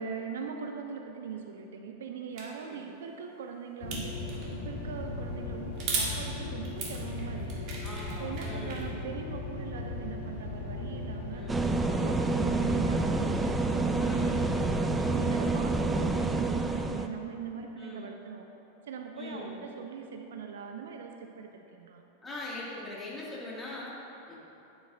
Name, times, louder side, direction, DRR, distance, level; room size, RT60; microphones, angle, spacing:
voice 1, 0.0-4.2 4.5-7.7 8.1-11.4 11.9-14.5 15.1-18.5 18.9-22.0, right 6 dB, 60° right, 4 dB, 0.6 m, -41 dB
sound 1, 2.4-2.5 3.9-4.5 5.8-6.1 6.6-8.8, right 4 dB, 40° right, 1.7 m, -35 dB
sound 2, 3.8-15.4, left 2 dB, 55° left, 1.4 m, -38 dB
voice 2, 7.8-8.9 11.3-11.7 13.9-14.5 17.8-18.2 19.1-19.6 22.2-24.0 24.3-24.4, left 2 dB, 15° left, -6 dB, 2.2 m, -42 dB
sound 3, 11.5-17.1, right 3 dB, 10° right, 0.5 m, -28 dB
12.0 x 9.2 x 2.6 m, 3.0 s
figure-of-eight pair, 90°, 0 cm